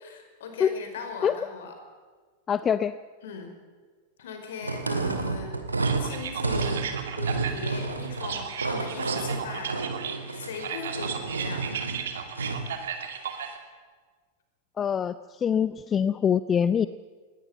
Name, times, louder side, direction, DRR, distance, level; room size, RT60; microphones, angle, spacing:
voice 1, 0.0-1.7 3.2-3.5 4.2-6.9 7.2-9.7 10.3-11.7, left 5 dB, 60° left, 5 dB, 5.2 m, -39 dB
voice 2, 2.5-3.0 14.8-16.9, left 8 dB, 25° left, 15 dB, 0.6 m, -24 dB
sound 1, 4.6-12.7, right 3 dB, 80° right, 2.3 m, -30 dB
sound 2, 5.8-13.6, right 7 dB, 60° right, 2.6 m, -35 dB
20.0 x 18.0 x 9.0 m, 1.5 s
figure-of-eight pair, 90°, 0 cm